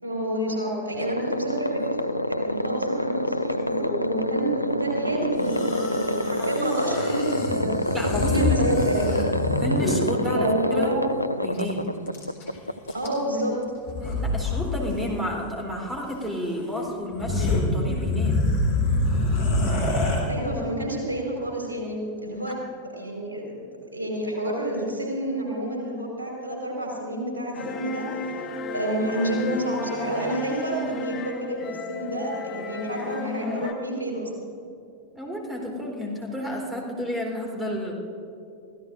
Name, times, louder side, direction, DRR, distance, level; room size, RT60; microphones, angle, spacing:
voice 1, 0.0-7.8 8.2-9.2 10.3-11.1 12.9-13.5 20.3-22.6 22.8-23.6 23.9-28.4 28.7-34.3, right 1 dB, 75° right, -2 dB, 4.8 m, -29 dB
sound 1, 1.0-13.6, left 1 dB, 90° left, 0.4 m, -27 dB
sound 2, 5.4-10.1 11.5-11.6 11.9-12.5 12.9-13.4 13.9-14.6 14.9-15.1 16.2-16.3 16.8-16.9 17.1-20.2, left 2 dB, 50° left, 4.2 m, -26 dB
voice 2, 7.9-8.4 9.6-10.9 11.4-11.9 14.0-18.4 35.1-37.9, equal, 10° right, 0 dB, 3.9 m, -31 dB
sound 3, 27.5-33.7, left 4 dB, 30° left, 1.1 m, -34 dB
27.0 x 16.0 x 2.6 m, 2.5 s
figure-of-eight pair, 90°, 0 cm